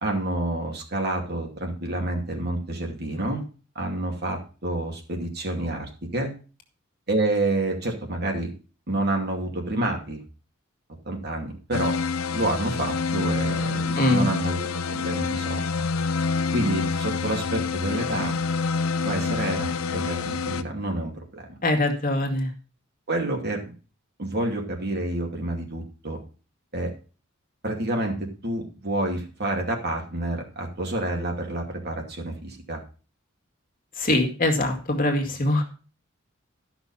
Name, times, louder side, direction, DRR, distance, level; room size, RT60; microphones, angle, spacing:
voice 1, 0.0-3.4 3.7-6.3 7.1-8.5 8.9-10.2 11.0-11.9 12.3-15.6 16.5-18.4 19.0-21.4 23.1-23.7 24.2-26.2 26.7-26.9 27.6-28.1 28.4-32.8, right 2 dB, 50° right, 2 dB, 2.6 m, -28 dB
sound 1, 11.7-20.6, left 4 dB, 85° left, 0.7 m, -27 dB
voice 2, 14.0-14.3 21.6-22.5 34.0-35.6, left 1 dB, 45° left, 3 dB, 2.1 m, -23 dB
13.0 x 6.0 x 5.6 m, 0.37 s
head